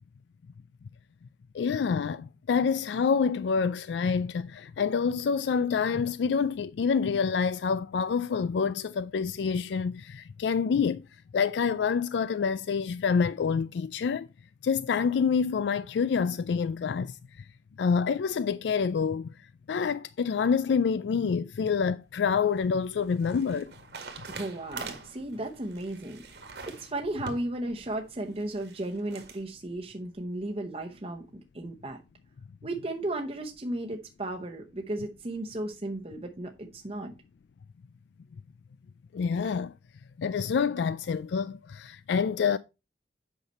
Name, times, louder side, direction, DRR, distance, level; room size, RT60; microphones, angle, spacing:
voice 1, 1.5-11.0 11.3-14.3 14.6-17.2 17.8-19.3 19.7-23.7 39.1-39.7 40.2-42.6, left 6 dB, 80° left, 0.4 m, -27 dB
sound 1, 22.1-29.4, right 4 dB, 75° right, 1.9 m, -45 dB
voice 2, 24.3-32.0 32.6-37.1, right 1 dB, 35° right, 0.9 m, -35 dB
8.3 x 5.7 x 4.1 m
head